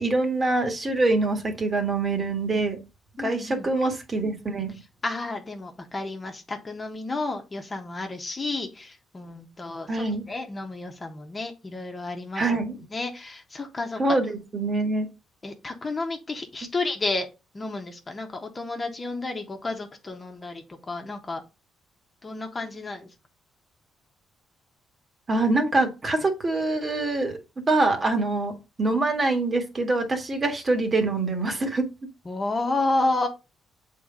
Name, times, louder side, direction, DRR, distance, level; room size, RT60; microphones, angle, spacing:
voice 1, 0.0-2.8 3.2-4.8 9.9-10.2 12.3-12.8 14.0-15.1 25.3-27.4 27.7-31.9, right 2 dB, 30° right, 5 dB, 1.7 m, -24 dB
voice 2, 3.2-3.7 5.0-12.6 12.9-14.0 15.4-17.3 17.5-21.4 22.2-23.1 32.2-33.3, left 2 dB, 30° left, 4 dB, 1.3 m, -31 dB
7.1 x 3.9 x 3.8 m, 0.27 s
cardioid pair, 90°, 0 cm